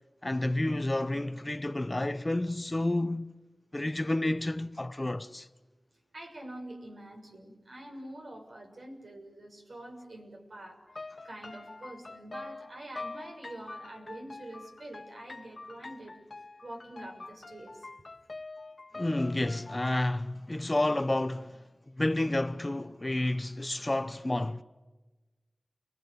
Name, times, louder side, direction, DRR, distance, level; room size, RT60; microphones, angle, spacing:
voice 1, 0.2-3.3 3.7-5.5 18.9-21.6 22.0-24.6, left 1 dB, 25° left, 1.0 m, -30 dB
voice 2, 6.1-10.8 11.2-16.1 16.6-17.8, right 1 dB, 75° right, 6.7 m, -45 dB
sound 1, 10.9-20.0, left 3 dB, 50° left, 0.8 m, -45 dB
30.0 x 22.5 x 8.1 m
wide cardioid pair, 80°, 0 cm